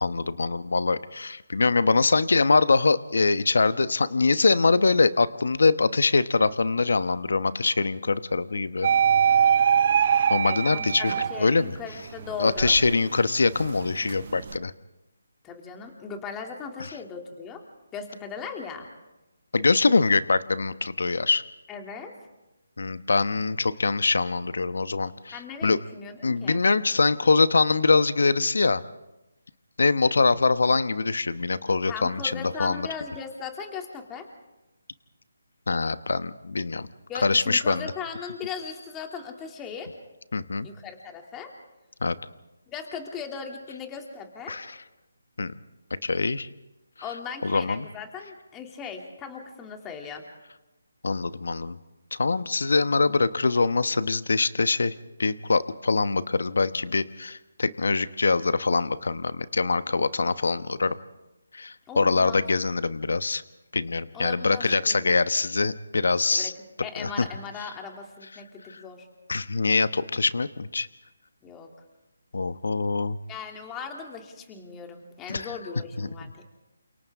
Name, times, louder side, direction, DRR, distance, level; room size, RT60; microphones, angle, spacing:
voice 1, 0.0-8.9 10.3-11.1 11.4-11.7 12.4-14.7 19.5-21.4 22.8-25.8 26.2-28.8 29.8-32.9 35.7-36.9 37.2-37.9 40.3-40.7 42.0-42.1 44.5-44.7 45.4-45.5 46.0-46.5 47.4-47.9 51.0-51.8 52.1-54.9 55.2-60.9 61.5-63.4 63.7-66.5 67.0-67.3 69.3-70.9 72.3-73.2 75.3-75.5 76.2-76.3, left 3 dB, 70° left, 13 dB, 1.1 m, -23 dB
sound 1, 8.8-11.7 12.2-14.6, right 8 dB, 45° right, 0.7 m, -23 dB
voice 2, 10.4-12.8 15.4-17.6 17.9-18.9 21.7-22.1 25.3-26.6 31.9-34.3 37.1-39.9 40.6-41.5 42.7-44.6 47.0-50.2 61.9-62.5 64.1-65.1 66.3-66.5 66.8-69.1 71.4-71.7 73.3-76.4, left 6 dB, 15° left, 3 dB, 2.7 m, -38 dB
29.5 x 27.5 x 3.7 m, 0.98 s
figure-of-eight pair, 155°, 0 cm